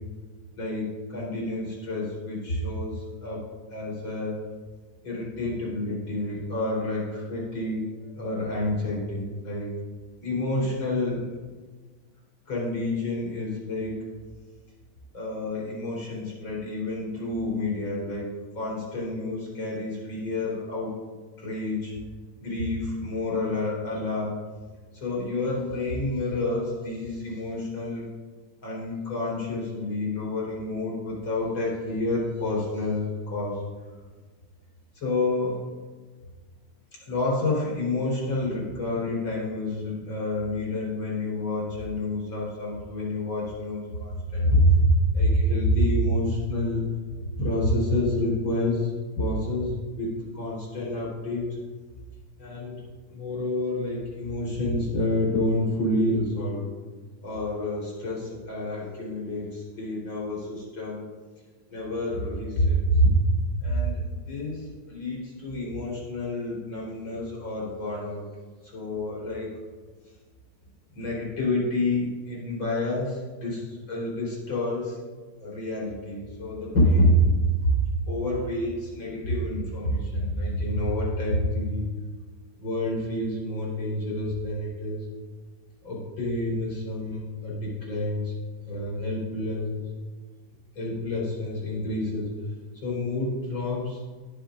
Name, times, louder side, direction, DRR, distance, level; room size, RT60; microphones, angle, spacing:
voice 1, 0.6-3.4 3.7-4.4 5.0-9.7 10.2-11.2 12.5-14.0 15.1-18.3 18.5-20.9 21.4-22.0 22.4-24.4 24.9-28.1 28.6-33.6 34.9-35.6 37.1-46.9 47.4-48.9 49.2-51.6 52.4-52.8 53.1-56.7 57.2-61.0 61.7-63.2 63.6-68.2 68.6-69.5 70.9-75.0 75.4-77.7 78.0-81.9 82.6-85.0 85.8-88.3 88.7-89.8 90.7-92.3 92.8-94.1, left 1 dB, 65° left, -5 dB, 4.7 m, -28 dB
20.0 x 7.8 x 2.5 m, 1.4 s
omnidirectional pair, 2.4 m